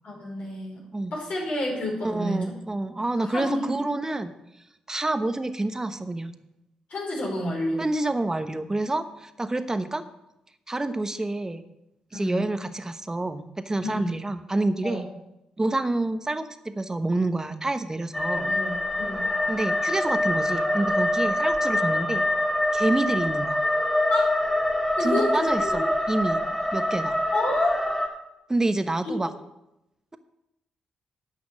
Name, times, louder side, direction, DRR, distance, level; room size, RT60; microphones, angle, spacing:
voice 1, 0.0-0.8 1.1-2.5 2.9-3.7 6.9-7.8 12.1-12.5 13.8-14.1 14.8-15.0 18.3-19.3 24.1-24.3 25.0-25.8 27.3-27.8 29.1-29.3, left 1 dB, 60° left, -3 dB, 5.0 m, -29 dB
voice 2, 2.0-4.3 4.9-6.3 7.8-10.0 10.7-11.6 12.1-15.0 15.6-18.5 19.5-22.2 22.7-23.6 25.0-26.4 26.7-27.2 28.5-29.3, right 2 dB, 20° right, 9 dB, 1.1 m, -28 dB
sound 1, 18.1-28.1, left 1 dB, 15° left, 2.3 m, -25 dB
10.5 x 5.9 x 7.5 m, 0.89 s
hypercardioid pair, 45°, 3 cm